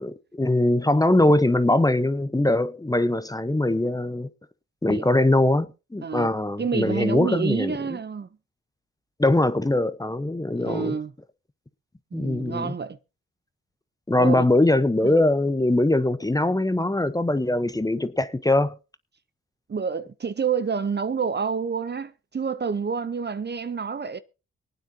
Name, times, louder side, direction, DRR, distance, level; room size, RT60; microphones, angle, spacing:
voice 1, 0.0-4.3 4.8-7.8 9.2-11.0 12.1-12.7 14.1-18.7, left 1 dB, 10° left, 0.9 m, -22 dB
voice 2, 6.6-8.3 10.6-11.1 12.1-13.0 14.2-14.5 15.0-15.2 19.7-24.2, right 6 dB, 35° right, 0.8 m, -28 dB
23.5 x 9.3 x 2.8 m
cardioid pair, 60°, 29 cm